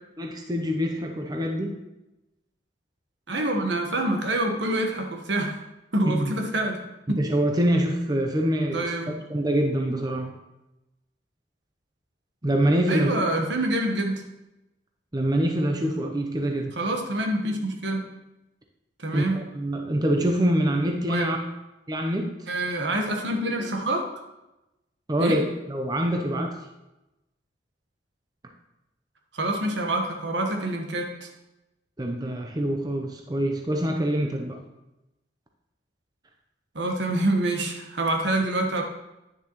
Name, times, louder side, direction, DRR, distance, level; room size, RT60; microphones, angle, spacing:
voice 1, 0.2-1.7 6.0-6.3 7.1-8.8 9.3-10.3 12.4-13.1 15.1-16.8 19.1-21.4 21.9-22.3 25.1-26.5 32.0-34.6, right 1 dB, 20° right, 2 dB, 0.7 m, -25 dB
voice 2, 3.3-5.6 5.9-7.2 8.7-9.1 12.9-14.3 16.8-18.1 19.0-19.5 21.1-21.3 22.5-24.1 25.2-25.4 29.3-31.3 36.7-38.8, right 1 dB, 75° right, 2 dB, 1.2 m, -26 dB
9.8 x 6.8 x 3.0 m, 0.95 s
head